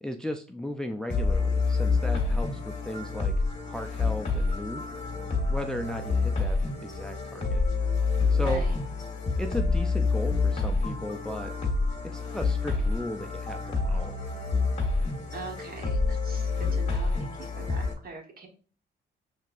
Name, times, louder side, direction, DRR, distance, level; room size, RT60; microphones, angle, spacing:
voice 1, 0.0-3.3 3.7-4.9 5.5-7.6 8.3-8.7 9.4-11.5 12.1-13.6 13.8-14.2, left 1 dB, 5° left, 5 dB, 0.4 m, -36 dB
sound 1, 1.1-17.9, left 4 dB, 35° left, 1.3 m, -28 dB
voice 2, 8.3-8.8 15.3-18.5, right 4 dB, 50° right, 3 dB, 1.2 m, -42 dB
5.2 x 3.3 x 2.4 m, 0.39 s
cardioid pair, 90°, 20 cm